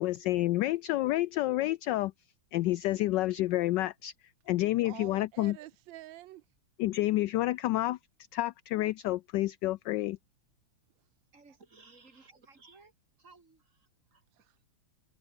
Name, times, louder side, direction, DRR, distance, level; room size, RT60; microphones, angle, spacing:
voice 1, 0.0-2.1 2.5-4.1 4.5-5.6 6.8-8.0 8.3-10.2, left 16 dB, 75° left, 1.1 m, -29 dB
voice 2, 4.8-6.4 14.3-14.6, right 16 dB, 75° right, 1.3 m, -48 dB
voice 3, 11.3-12.9 13.2-14.2, right 3 dB, 35° right, 3.4 m, -58 dB
omnidirectional pair, 2.3 m